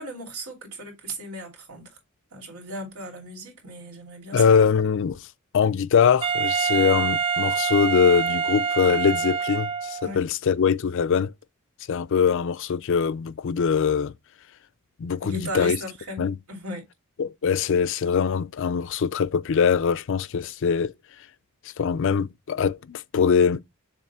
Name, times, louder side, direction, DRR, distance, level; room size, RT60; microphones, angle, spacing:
voice 1, 0.0-2.0 2.3-4.7 10.0-10.2 15.2-16.8, right 1 dB, 85° right, 2.9 m, -36 dB
voice 2, 4.3-5.3 5.5-11.3 11.9-14.1 15.0-15.8 16.2-16.3 17.2-20.9 21.6-23.6, left 6 dB, 60° left, 0.4 m, -22 dB
Wind instrument woodwind instrument, 6.2-10.1, right 6 dB, 25° right, 0.3 m, -25 dB
7.2 x 3.0 x 4.3 m
head